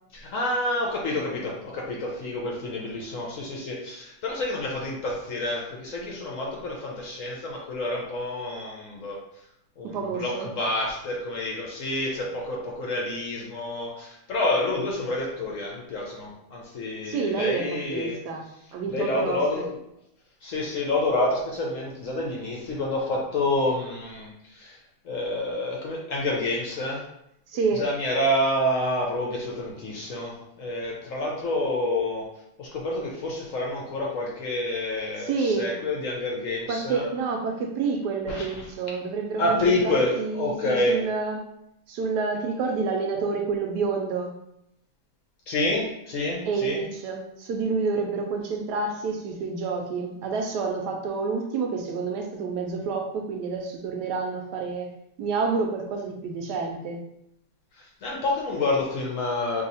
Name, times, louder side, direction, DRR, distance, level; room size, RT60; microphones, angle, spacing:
voice 1, 0.1-9.5 9.8-19.8 20.4-27.1 27.7-37.1 38.3-38.7 39.4-41.0 45.5-46.8 57.7-59.6, left 2 dB, 65° left, -2 dB, 0.9 m, -28 dB
voice 2, 9.8-10.5 17.1-18.4 18.7-19.4 27.5-27.8 35.2-35.8 36.7-41.4 41.9-44.3 46.5-57.0, right 4 dB, 80° right, 3 dB, 1.2 m, -28 dB
2.7 x 2.7 x 4.0 m, 0.80 s
omnidirectional pair, 1.8 m